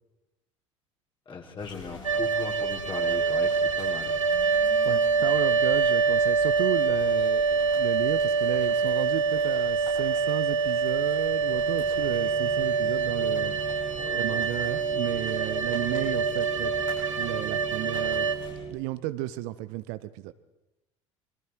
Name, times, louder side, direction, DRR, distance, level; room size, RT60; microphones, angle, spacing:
voice 1, 1.3-4.2 14.0-14.4, left 5 dB, 30° left, 1 dB, 3.6 m, -38 dB
sound 1, 1.6-18.5, left 3 dB, 85° left, 7.4 m, -47 dB
sound 2, 2.0-18.3, right 5 dB, 80° right, 1.2 m, -25 dB
voice 2, 4.8-13.6 14.1-16.7 17.2-18.3 18.7-20.3, right 16 dB, 55° right, 15 dB, 0.8 m, -33 dB
sound 3, 11.5-18.8, right 5 dB, 25° right, 2.2 m, -39 dB
27.0 x 22.5 x 4.6 m, 0.98 s
figure-of-eight pair, 65°, 16 cm